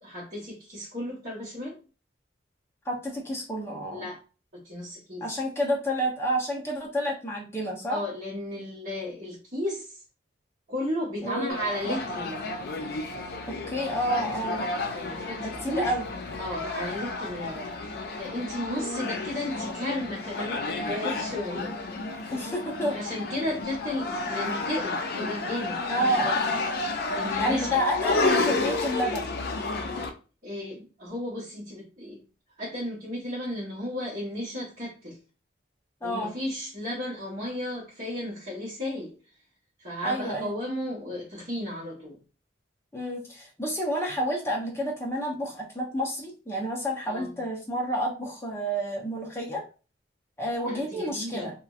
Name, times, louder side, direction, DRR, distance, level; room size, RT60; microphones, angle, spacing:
voice 1, 0.0-1.8 3.9-4.2 4.5-5.3 7.9-10.0 10.7-12.5 14.9-15.9 16.4-21.7 22.2-22.3 22.9-25.8 27.1-27.8 30.4-32.2 32.6-35.2 36.0-39.1 39.8-42.2 47.1-47.4 50.6-51.5, left 1 dB, 40° right, -8 dB, 1.0 m, -34 dB
voice 2, 2.9-4.1 5.2-8.0 11.2-11.6 13.5-14.6 15.4-16.1 18.7-19.1 22.3-23.0 25.9-26.7 27.4-29.3 36.0-36.3 40.0-40.5 42.9-49.6 50.4-51.5, equal, 15° left, -2 dB, 0.7 m, -30 dB
sound 1, 11.5-30.1, left 3 dB, 50° left, 0.4 m, -31 dB
2.9 x 2.5 x 2.4 m, 0.34 s
head